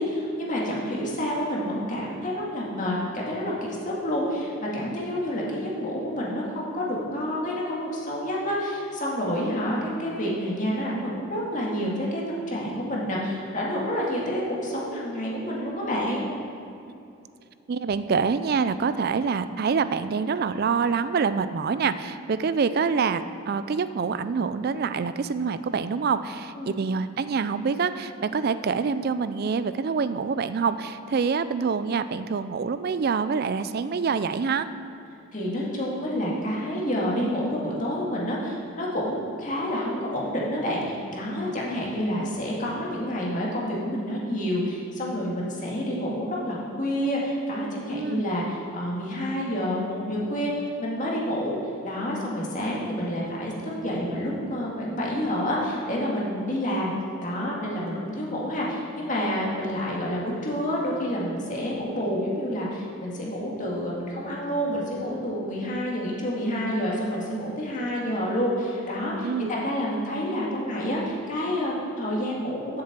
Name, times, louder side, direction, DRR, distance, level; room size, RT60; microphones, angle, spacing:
voice 1, 0.0-16.3 26.6-26.7 35.3-51.6 51.8-56.9 57.2-72.8, equal, 40° left, -4 dB, 2.0 m, -28 dB
voice 2, 17.7-34.7 47.9-48.3 69.2-69.5, right 5 dB, 45° right, 13 dB, 0.4 m, -26 dB
7.6 x 7.5 x 7.4 m, 2.6 s
head